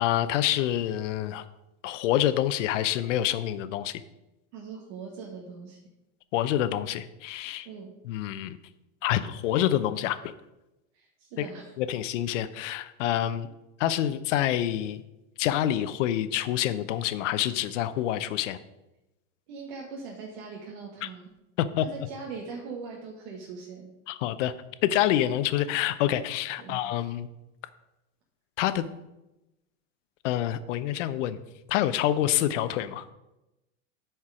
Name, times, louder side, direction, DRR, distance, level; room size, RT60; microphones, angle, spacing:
voice 1, 0.0-1.4 1.8-4.0 6.3-7.7 8.1-8.6 9.0-10.3 11.4-11.5 11.8-13.5 13.8-15.0 15.4-18.6 21.0-21.1 21.6-21.8 24.1-24.5 24.8-27.3 28.6-28.8 30.2-31.4 31.7-33.0, left 12 dB, 75° left, 13 dB, 0.7 m, -27 dB
voice 2, 4.5-5.8 7.6-7.9 10.9-11.7 19.5-21.3 21.8-23.9 26.6-26.8, right 5 dB, 65° right, -2 dB, 1.6 m, -41 dB
10.0 x 4.6 x 4.9 m, 0.96 s
supercardioid pair, 130°, 37 cm